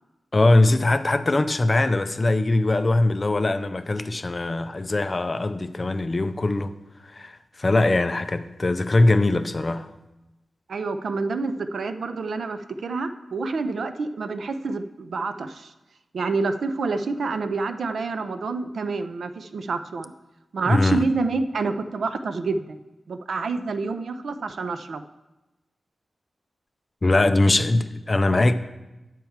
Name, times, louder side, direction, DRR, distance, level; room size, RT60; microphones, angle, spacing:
voice 1, 0.3-6.7 7.1-9.9 20.7-21.0 27.0-28.5, left 2 dB, 30° left, 0.4 m, -21 dB
voice 2, 10.7-15.7 16.1-20.1 20.5-22.8 23.1-25.0, right 3 dB, 70° right, 0.5 m, -28 dB
9.9 x 4.6 x 7.2 m
wide cardioid pair, 165°, 0 cm